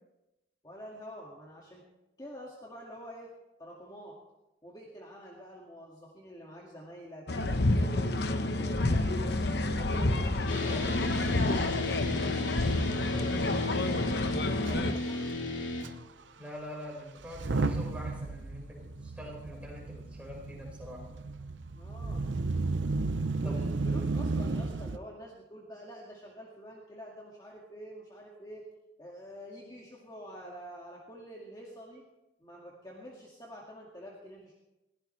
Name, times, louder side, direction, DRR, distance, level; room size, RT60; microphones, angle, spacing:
voice 1, 0.6-1.8 2.2-3.3 3.6-4.2 4.6-7.3 7.7-9.5 9.8-14.0 14.4-15.5 21.8-22.3 23.4-28.6 29.0-32.0 32.4-34.5, equal, 20° left, -3 dB, 2.0 m, -47 dB
sound 1, 7.3-14.9, left 2 dB, 60° left, 1.0 m, -29 dB
sound 2, 10.5-15.8, left 2 dB, 80° left, 2.6 m, -34 dB
Motor vehicle (road) / Engine starting / Accelerating revving vroom, 14.7-14.8 15.0-15.2 15.8-15.9 17.2-25.0, right 3 dB, 80° right, 0.7 m, -33 dB
voice 2, 16.4-21.0 23.4-23.7, left 1 dB, 5° right, -3 dB, 4.9 m, -44 dB
22.0 x 15.5 x 3.3 m, 0.96 s
head